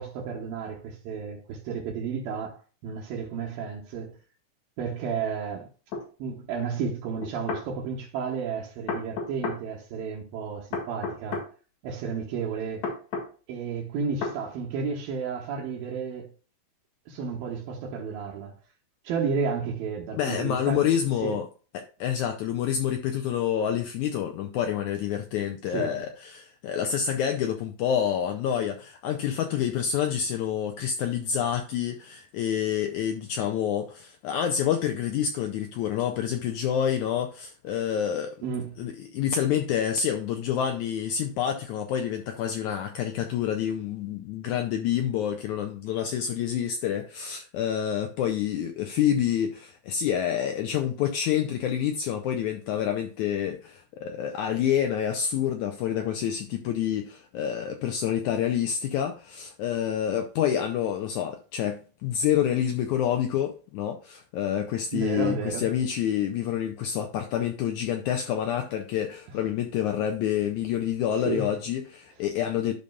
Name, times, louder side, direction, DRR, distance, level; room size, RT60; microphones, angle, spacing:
voice 1, 0.0-2.6 2.8-4.2 4.8-5.7 6.2-11.4 11.8-12.9 13.5-16.3 17.1-18.5 19.0-21.4 25.7-26.1 38.4-38.8 64.9-65.7 71.3-71.5, right 5 dB, 85° right, 2.9 m, -32 dB
sound 1, 5.9-6.1 7.2-7.7 8.9-9.6 10.7-11.5 12.8-13.3 14.2-14.4, left 4 dB, 55° left, 2.6 m, -31 dB
voice 2, 20.1-21.5 21.7-38.3 38.8-72.7, left 9 dB, 90° left, 1.7 m, -28 dB
11.5 x 5.4 x 2.3 m
omnidirectional pair, 4.1 m